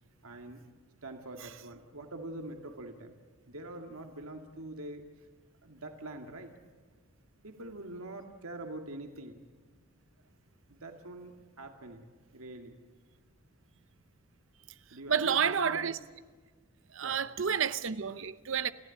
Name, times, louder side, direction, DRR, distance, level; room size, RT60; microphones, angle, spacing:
voice 1, 0.2-0.6 1.0-3.2 3.5-5.1 5.6-6.5 7.4-9.4 10.7-12.0 12.3-12.8 14.9-15.9 17.0-17.5, right 2 dB, 90° right, 2.1 m, -44 dB
voice 2, 15.1-16.0 16.9-18.7, right 7 dB, 65° right, 0.8 m, -30 dB
29.5 x 15.0 x 8.5 m
head